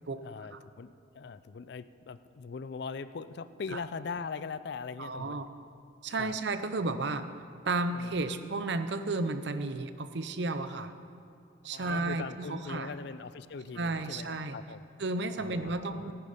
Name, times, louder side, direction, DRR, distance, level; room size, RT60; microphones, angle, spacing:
voice 1, 0.2-5.4 6.2-6.4 7.9-8.1 11.7-14.8 15.4-16.1, left 5 dB, 55° left, 14 dB, 0.4 m, -41 dB
voice 2, 5.0-5.5 6.0-7.2 7.6-10.9 11.6-12.9 13.8-14.6 15.0-16.1, right 3 dB, 60° right, 10 dB, 0.6 m, -33 dB
15.0 x 10.5 x 5.1 m, 2.4 s
head